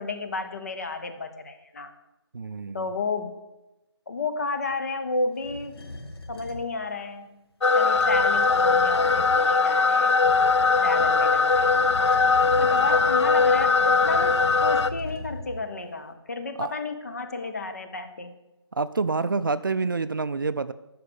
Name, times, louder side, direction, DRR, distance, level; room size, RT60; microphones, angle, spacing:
voice 1, 0.0-1.9 2.7-3.3 4.1-5.8 6.3-7.4 7.7-10.2 10.8-11.9 12.6-18.3, left 3 dB, 35° left, 7 dB, 0.8 m, -31 dB
voice 2, 2.3-2.9 16.6-16.7 18.7-20.7, right 4 dB, 50° right, 14 dB, 0.4 m, -27 dB
sound 1, 5.4-6.7 7.8-9.4 10.2-15.7, left 2 dB, 60° left, 1.2 m, -39 dB
sound 2, 7.6-14.9, left 4 dB, 80° left, 0.6 m, -20 dB
12.0 x 4.8 x 6.7 m, 0.99 s
figure-of-eight pair, 170°, 14 cm